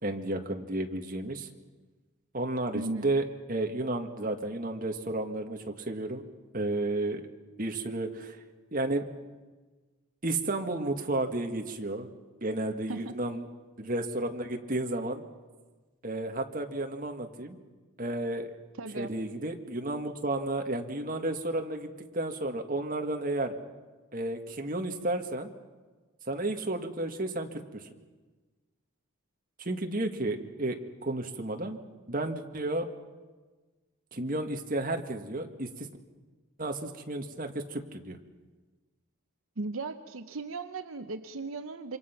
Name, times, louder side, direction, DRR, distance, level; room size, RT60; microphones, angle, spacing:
voice 1, 0.0-1.5 2.3-6.3 6.5-7.2 7.6-8.4 8.7-9.1 10.2-12.1 12.4-13.5 13.8-15.2 16.0-17.6 18.0-18.5 19.0-23.5 24.1-25.5 26.3-27.8 29.6-31.8 32.1-32.9 34.1-35.9 36.6-38.2, right 2 dB, 40° right, 4 dB, 1.8 m, -32 dB
voice 2, 2.7-3.1 12.9-13.2 18.8-19.1 39.6-42.0, right 3 dB, 75° right, 9 dB, 0.8 m, -37 dB
27.5 x 25.0 x 5.9 m, 1.3 s
head